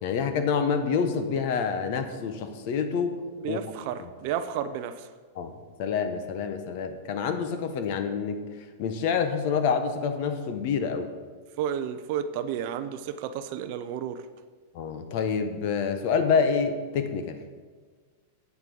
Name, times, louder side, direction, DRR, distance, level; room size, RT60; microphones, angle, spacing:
voice 1, 0.0-3.1 3.4-3.6 4.0-4.1 5.3-5.5 5.8-8.4 8.8-11.1 14.7-17.4, left 6 dB, 40° left, 8 dB, 0.9 m, -27 dB
voice 2, 3.4-5.1 11.6-14.2, right 9 dB, 40° right, 10 dB, 0.5 m, -32 dB
8.4 x 8.0 x 5.3 m, 1.5 s
supercardioid pair, 170°, 0 cm